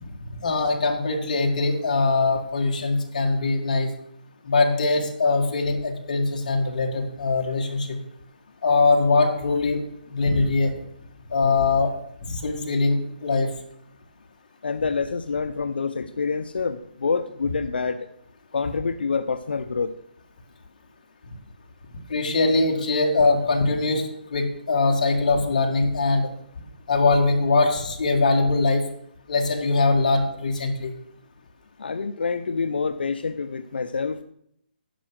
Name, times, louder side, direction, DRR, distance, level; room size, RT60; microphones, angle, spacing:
voice 1, 0.4-3.9 4.4-8.0 8.6-9.8 10.1-10.7 11.3-11.9 12.2-13.5 22.1-26.3 26.9-28.9 29.3-30.9, left 3 dB, 45° left, 1 dB, 1.9 m, -22 dB
voice 2, 14.6-18.1 18.5-20.0 31.8-34.2, left 5 dB, 85° left, 9 dB, 0.6 m, -27 dB
10.0 x 5.9 x 6.3 m, 0.71 s
hypercardioid pair, 175°, 5 cm